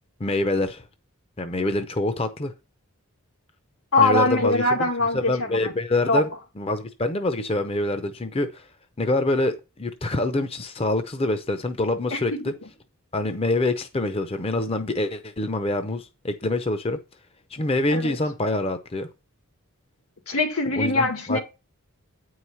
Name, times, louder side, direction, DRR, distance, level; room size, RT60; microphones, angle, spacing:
voice 1, 0.2-0.9 1.4-2.5 4.0-4.8 5.1-6.3 6.6-8.7 9.0-12.5 13.1-17.0 17.5-19.1 20.8-21.4, left 2 dB, 25° left, 0.6 m, -25 dB
voice 2, 3.9-5.7 6.1-6.2 12.1-12.4 17.9-18.2 20.3-21.4, left 2 dB, 85° left, 2.0 m, -22 dB
9.0 x 4.8 x 5.6 m
head